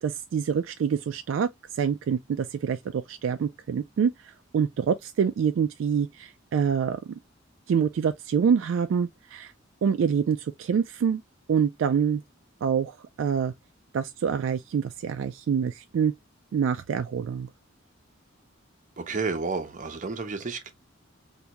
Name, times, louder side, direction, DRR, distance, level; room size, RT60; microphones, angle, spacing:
voice 1, 0.0-7.2 7.7-9.5 9.8-11.2 11.5-12.2 12.6-13.5 13.9-16.1 16.5-17.5, right 7 dB, 70° right, 0.3 m, -26 dB
voice 2, 19.0-20.7, right 4 dB, 40° right, 0.7 m, -31 dB
3.5 x 2.6 x 2.9 m
head